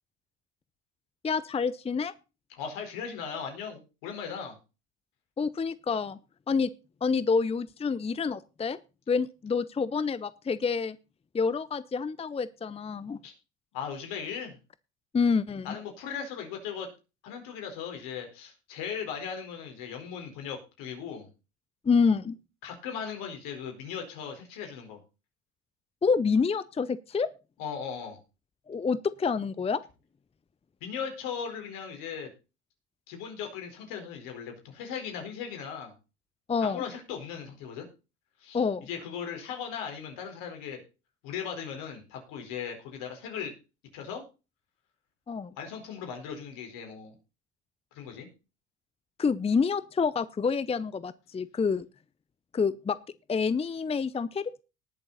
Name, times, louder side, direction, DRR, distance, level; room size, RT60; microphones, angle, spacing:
voice 1, 1.2-2.1 5.4-6.2 6.5-6.7 7.0-8.8 9.1-11.0 11.3-13.2 15.1-15.8 21.8-22.4 26.0-27.3 28.7-29.8 36.5-36.8 38.5-38.9 45.3-45.5 49.2-51.9 52.5-53.0 53.3-54.6, left 5 dB, 20° left, 17 dB, 0.6 m, -27 dB
voice 2, 2.6-4.6 13.2-13.3 13.7-14.6 15.6-16.9 17.2-21.3 22.6-25.0 27.6-28.2 30.8-32.3 33.1-35.9 36.6-37.9 38.4-38.6 38.9-40.8 41.2-43.5 43.9-44.2 45.6-47.1 47.9-48.3, left 7 dB, 70° left, 4 dB, 4.6 m, -38 dB
19.0 x 6.9 x 4.2 m, 0.31 s
hypercardioid pair, 70°, 34 cm